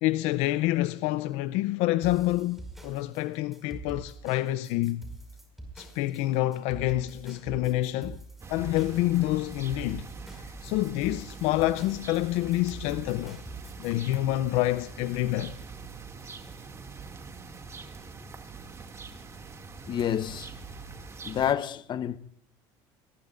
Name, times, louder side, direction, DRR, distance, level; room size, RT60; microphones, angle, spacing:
voice 1, 0.0-5.1 5.8-8.2 8.5-10.1 10.4-13.4 13.8-15.6, left 16 dB, 75° left, 0.6 m, -27 dB
sound 1, 2.0-13.9, right 2 dB, ahead, 5.5 m, -44 dB
sound 2, 8.4-21.5, right 4 dB, 25° right, 2.4 m, -44 dB
voice 2, 19.9-20.5 21.2-22.2, left 9 dB, 45° left, 0.9 m, -28 dB
25.5 x 20.5 x 2.5 m
supercardioid pair, 100°, 11 cm